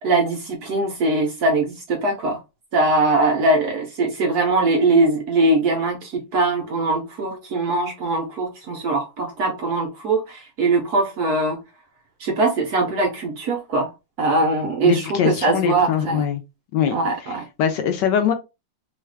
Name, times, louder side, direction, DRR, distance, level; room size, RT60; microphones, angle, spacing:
voice 1, 0.0-2.4 2.7-11.6 12.2-13.9 14.2-16.2 16.9-17.4, right 2 dB, 65° right, 1.0 m, -21 dB
voice 2, 14.8-16.4 16.7-17.0 17.2-18.3, left 8 dB, 75° left, 1.1 m, -22 dB
3.2 x 2.4 x 3.2 m
omnidirectional pair, 2.1 m